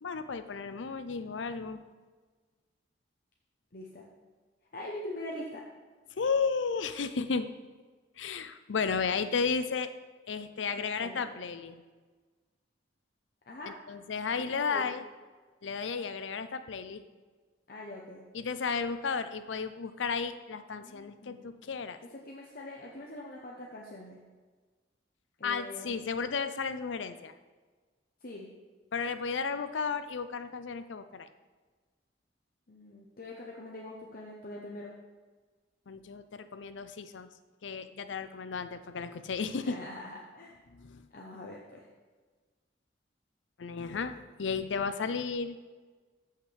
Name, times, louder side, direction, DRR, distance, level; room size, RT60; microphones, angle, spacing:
voice 1, 0.0-1.8 6.1-7.5 8.2-9.9 10.3-11.8 13.9-15.0 15.6-17.0 18.3-22.0 25.4-27.3 28.9-31.3 35.9-37.3 37.6-39.8 40.7-41.1 43.6-45.6, left 5 dB, 85° left, 11 dB, 0.5 m, -33 dB
voice 2, 3.7-4.0 4.7-5.6 10.8-11.3 13.5-13.7 14.4-14.9 17.7-18.2 20.7-21.5 22.0-24.2 25.4-26.0 28.2-28.5 32.7-34.9 39.5-40.5 41.1-41.8, left 1 dB, 50° left, -2 dB, 0.9 m, -43 dB
14.0 x 5.8 x 3.4 m, 1.4 s
head